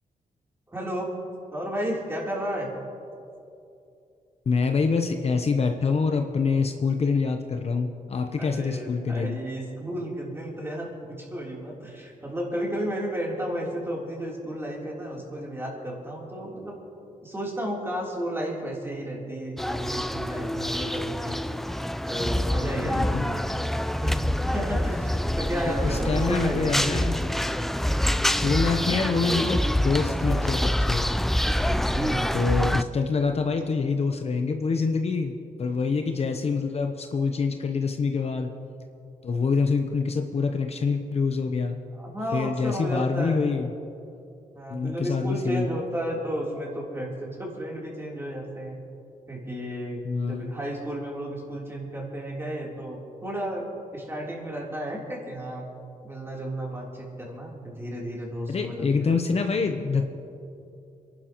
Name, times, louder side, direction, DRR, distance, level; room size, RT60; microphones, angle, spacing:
voice 1, 0.7-1.1 1.5-2.7 8.4-16.8 17.2-21.4 22.1-23.4 24.0-24.1 24.5-26.8 28.4-28.7 31.9-32.3 41.9-43.4 44.5-48.8 49.3-53.7 53.9-55.7 56.0-59.2, equal, 15° right, -4 dB, 3.5 m, -33 dB
voice 2, 4.5-9.4 23.0-23.2 25.8-27.2 28.4-31.1 32.3-38.5 39.2-41.7 42.3-43.7 44.7-45.8 50.0-50.5 58.5-60.1, left 4 dB, 45° left, 5 dB, 0.8 m, -26 dB
sound 1, 19.6-32.8, equal, ahead, 0.4 m, -26 dB
28.0 x 11.5 x 3.1 m, 2.6 s
cardioid pair, 90°, 14 cm